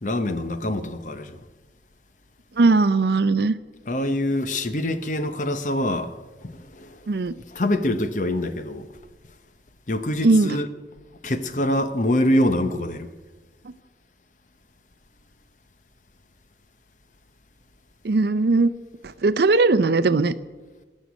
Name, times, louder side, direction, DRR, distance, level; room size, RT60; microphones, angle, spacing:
voice 1, 0.0-1.4 3.9-6.1 6.4-6.9 7.5-8.9 9.9-10.7 11.2-13.1, left 1 dB, 45° left, 0.8 m, -24 dB
voice 2, 2.6-3.5 7.1-7.3 10.2-10.6 18.0-18.7 19.0-20.3, right 3 dB, 65° right, 0.5 m, -19 dB
19.0 x 6.5 x 8.3 m
head